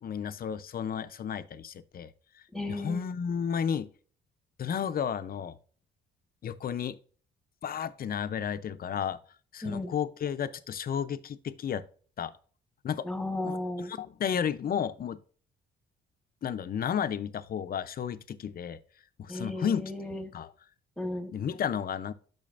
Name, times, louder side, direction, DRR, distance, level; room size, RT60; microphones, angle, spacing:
voice 1, 0.0-2.1 2.7-3.9 4.6-5.6 6.4-7.0 7.6-9.2 9.5-11.8 12.2-12.3 12.8-13.1 13.4-15.2 16.4-18.8 19.2-19.9 20.3-20.5 21.3-22.1, left 8 dB, 50° left, 0.6 m, -32 dB
voice 2, 2.5-3.0 9.6-9.9 13.0-13.9 19.3-20.3 21.0-21.3, left 2 dB, 5° left, 1.4 m, -34 dB
8.5 x 6.1 x 2.5 m
cardioid pair, 90°, 20 cm